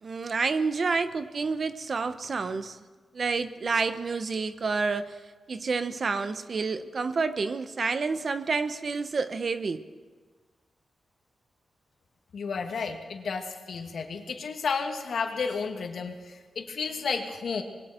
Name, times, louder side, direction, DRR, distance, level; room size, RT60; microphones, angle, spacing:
voice 1, 0.0-2.8 3.1-5.2 5.5-9.8, right 4 dB, 45° right, 11 dB, 1.0 m, -29 dB
voice 2, 12.3-17.6, left 5 dB, 70° left, 3 dB, 2.4 m, -32 dB
26.0 x 22.0 x 4.5 m, 1.4 s
wide cardioid pair, 140°, 0 cm